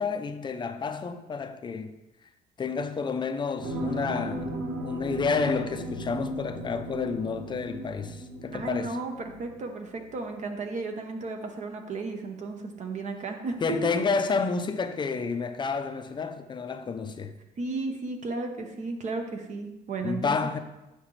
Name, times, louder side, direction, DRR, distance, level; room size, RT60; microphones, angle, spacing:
voice 1, 0.0-2.0 2.6-4.5 4.8-9.0 13.6-17.3 20.0-20.6, left 5 dB, 25° left, 0.6 m, -30 dB
sound 1, 3.6-9.7 10.1-10.2, right 1 dB, 60° right, 1.5 m, -36 dB
voice 2, 8.5-13.6 17.6-20.4, right 3 dB, 45° right, 0.9 m, -34 dB
8.1 x 5.8 x 3.2 m
cardioid pair, 110°, 17 cm